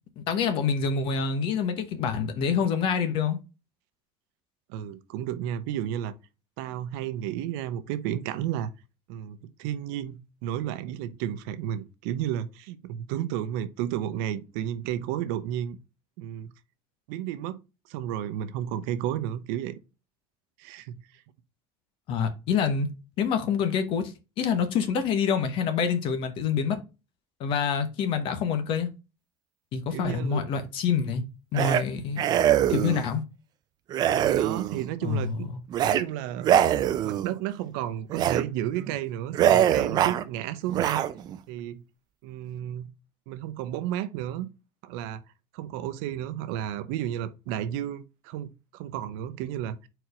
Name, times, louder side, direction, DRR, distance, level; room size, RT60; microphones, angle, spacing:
voice 1, 0.2-3.4 22.1-22.9 23.2-26.8 27.4-28.9 29.7-31.2 31.5-32.2 32.7-33.2 35.0-35.6, left 6 dB, 50° left, 1.0 m, -26 dB
voice 2, 4.7-6.1 6.6-8.7 9.1-15.8 16.2-16.5 17.1-17.6 17.9-19.8 20.6-21.0 29.9-30.4 34.2-35.5 35.9-36.6 37.0-41.0 41.5-41.8 42.2-42.9 43.3-44.5 44.8-45.2 45.5-49.9, right 11 dB, 85° right, 0.8 m, -32 dB
sound 1, 31.5-31.8 32.2-33.1 33.9-34.9 35.7-36.0 36.4-37.3 38.1-38.4 38.8-39.0 39.3-40.2 40.7-41.4, right 10 dB, 35° right, 0.5 m, -23 dB
4.6 x 4.5 x 5.0 m
cardioid pair, 160°, 11 cm